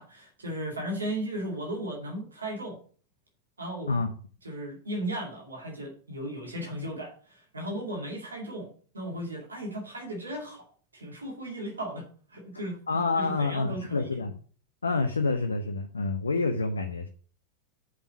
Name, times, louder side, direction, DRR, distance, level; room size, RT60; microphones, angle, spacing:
voice 1, 0.0-2.8 3.6-4.0 4.4-10.6 10.9-12.8 13.2-14.2, right 1 dB, 75° right, -1 dB, 2.4 m, -36 dB
voice 2, 12.9-14.3 14.8-17.1, left 3 dB, 75° left, 5 dB, 0.8 m, -28 dB
6.5 x 5.4 x 6.9 m, 0.42 s
figure-of-eight pair, 90°, 0 cm